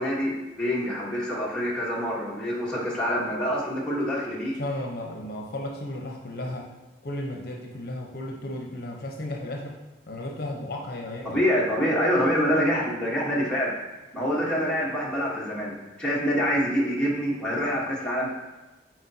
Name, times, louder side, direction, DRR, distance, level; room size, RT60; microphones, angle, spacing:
voice 1, 0.0-4.6 11.2-13.7 14.1-18.3, equal, 5° left, -6 dB, 1.2 m, -26 dB
voice 2, 4.6-6.7 7.0-9.8 10.1-11.4, left 1 dB, 55° left, 0 dB, 0.8 m, -34 dB
7.9 x 4.5 x 2.8 m, 1.1 s
head